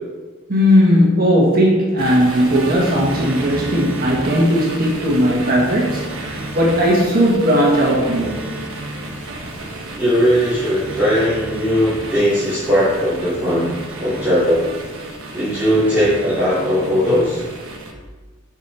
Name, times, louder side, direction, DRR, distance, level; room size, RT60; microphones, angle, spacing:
voice 1, 0.5-8.4, equal, 45° right, -3 dB, 1.5 m, -16 dB
sound 1, 2.0-17.9, right 2 dB, 75° right, 1.2 m, -31 dB
voice 2, 10.0-13.7 14.0-14.7 15.3-17.4, equal, 10° right, -14 dB, 2.7 m, -18 dB
7.3 x 5.1 x 5.5 m, 1.3 s
head